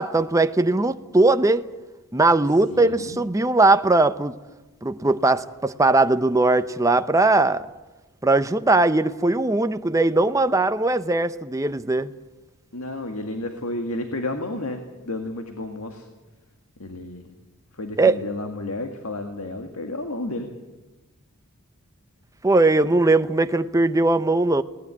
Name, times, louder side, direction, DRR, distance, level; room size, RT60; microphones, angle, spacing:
voice 1, 0.0-1.6 2.1-4.4 4.8-7.7 8.2-12.1 18.0-18.2 22.4-24.6, right 2 dB, 15° right, 0.7 m, -19 dB
voice 2, 2.7-3.2 12.7-16.1 16.8-17.3 17.7-20.5, left 2 dB, 70° left, 1.9 m, -31 dB
19.5 x 18.5 x 9.8 m
head